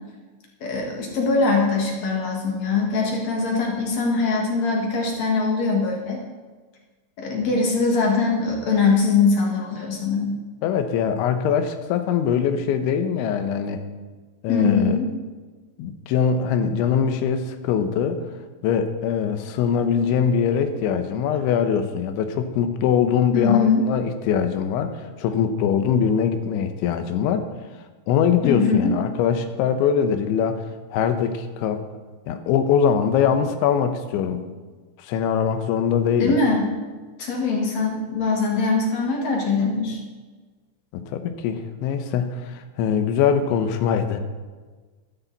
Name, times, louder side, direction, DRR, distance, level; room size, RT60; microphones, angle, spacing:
voice 1, 0.6-6.2 7.2-10.4 14.5-15.1 23.3-23.8 28.4-29.0 36.2-36.7 37.2-40.0, left 4 dB, 50° left, 0 dB, 2.4 m, -22 dB
voice 2, 10.6-13.8 14.4-15.0 15.8-18.2 18.6-24.9 25.2-27.5 28.1-31.8 32.3-34.5 35.0-36.4 40.9-44.2, left 7 dB, 90° left, 8 dB, 3.4 m, -22 dB
14.0 x 13.0 x 4.1 m, 1.3 s
omnidirectional pair, 5.2 m